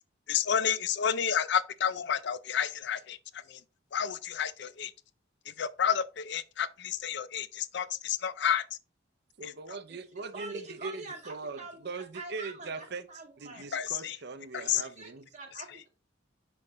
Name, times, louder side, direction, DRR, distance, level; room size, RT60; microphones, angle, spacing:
voice 1, 0.3-3.2 3.5-3.6 3.9-4.9 5.5-8.6 9.4-9.5 13.7-14.2 14.5-14.8, left 8 dB, 60° left, 0.5 m, -30 dB
voice 2, 9.4-13.1 13.4-15.3, right 4 dB, 55° right, 0.6 m, -41 dB
voice 3, 10.3-13.7 14.5-15.9, right 3 dB, 40° right, 1.0 m, -45 dB
5.8 x 5.2 x 3.1 m
head